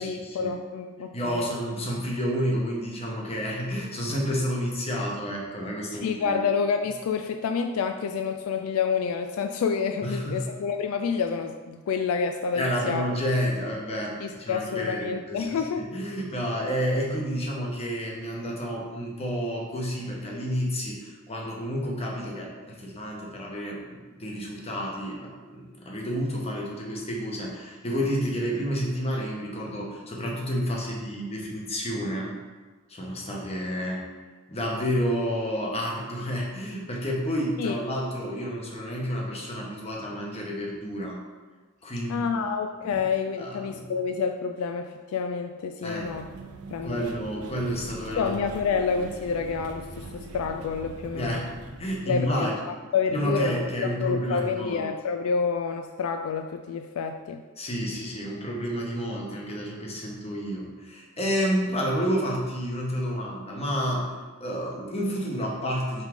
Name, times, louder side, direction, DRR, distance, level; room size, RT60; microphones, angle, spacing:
voice 1, 0.0-1.5 5.9-13.0 14.2-15.9 37.6-37.8 42.1-46.3 46.7-47.0 48.2-51.4 52.1-52.6 52.9-57.4, left 5 dB, 75° left, 6 dB, 0.3 m, -28 dB
voice 2, 1.1-6.4 10.0-10.5 12.5-32.3 32.9-34.0 34.5-41.2 41.8-42.4 42.8-43.0 43.4-43.9 45.8-46.1 46.8-48.4 49.0-49.1 51.1-52.5 53.1-54.9 57.6-64.1 64.4-66.0, equal, 30° left, -2 dB, 1.1 m, -30 dB
sound 1, 46.0-52.9, right 2 dB, 80° right, 0.5 m, -42 dB
5.4 x 4.8 x 3.7 m, 1.4 s
head